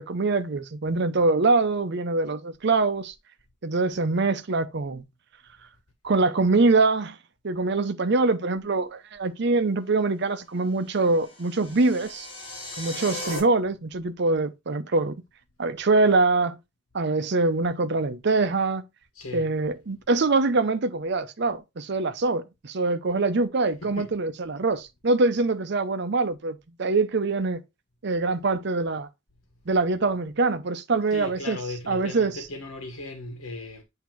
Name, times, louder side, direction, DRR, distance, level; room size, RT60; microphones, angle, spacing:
voice 1, 0.0-3.1 3.6-5.0 6.0-7.2 7.4-12.3 12.8-15.2 15.6-16.6 16.9-18.8 19.3-27.6 28.0-29.1 29.7-31.6 31.9-32.3, right 3 dB, 55° right, 0.6 m, -24 dB
sound 1, 10.8-13.4, left 1 dB, 25° left, 3.1 m, -37 dB
voice 2, 19.1-19.5 23.8-24.1 31.1-33.8, left 2 dB, 85° left, 1.3 m, -37 dB
8.3 x 2.9 x 4.5 m
head